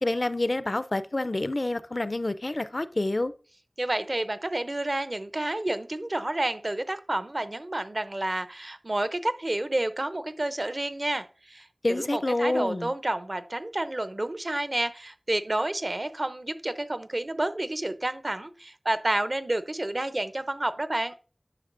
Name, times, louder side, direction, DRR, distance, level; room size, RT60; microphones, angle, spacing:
voice 1, 0.0-3.3 11.8-12.9, left 2 dB, 60° left, 0.4 m, -28 dB
voice 2, 3.8-21.1, right 1 dB, 55° right, 0.6 m, -30 dB
9.9 x 5.9 x 2.5 m
wide cardioid pair, 40°, 0 cm